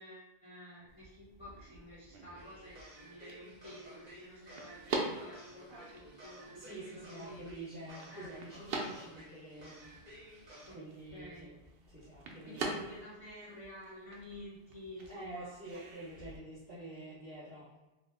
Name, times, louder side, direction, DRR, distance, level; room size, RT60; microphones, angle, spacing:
voice 1, 0.0-7.4 8.1-8.3 10.6-10.8 11.1-11.5 12.4-15.8, left 1 dB, 35° left, -9 dB, 0.8 m, -50 dB
sound 1, 0.9-16.4, right 3 dB, 70° right, 0.8 m, -45 dB
sound 2, 2.4-10.7, equal, 45° right, 1.1 m, -54 dB
voice 2, 6.5-10.3 10.7-11.6 11.9-12.7 15.1-17.7, right 1 dB, 15° right, -14 dB, 0.7 m, -48 dB
2.9 x 2.0 x 3.4 m, 1.0 s
omnidirectional pair, 1.0 m